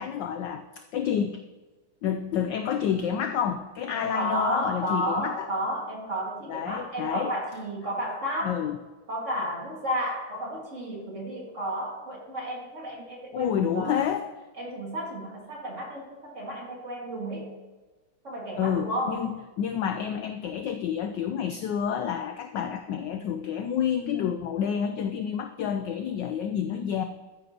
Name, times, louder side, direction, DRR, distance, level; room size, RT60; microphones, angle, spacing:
voice 1, 0.0-1.4 2.0-5.5 6.5-7.3 8.4-8.8 13.3-14.2 18.6-27.0, left 8 dB, 75° left, 7 dB, 1.0 m, -29 dB
voice 2, 3.9-8.6 9.1-14.0 14.6-17.6 18.2-19.3, equal, 35° right, -1 dB, 2.1 m, -32 dB
13.5 x 9.4 x 2.8 m, 1.3 s
omnidirectional pair, 2.4 m